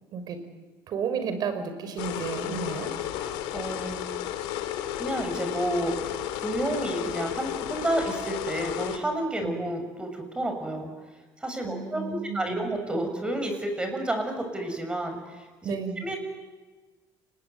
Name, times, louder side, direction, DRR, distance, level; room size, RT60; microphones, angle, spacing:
voice 1, 0.9-2.9 9.4-9.7 11.6-12.7 15.6-16.0, right 6 dB, 50° right, 9 dB, 5.4 m, -32 dB
sound 1, 2.0-9.0, left 11 dB, 90° left, 2.7 m, -33 dB
voice 2, 3.5-4.1 4.9-10.9 11.4-16.2, right 1 dB, 10° right, 5 dB, 6.8 m, -30 dB
29.0 x 21.0 x 9.6 m, 1.3 s
cardioid pair, 130°, 9 cm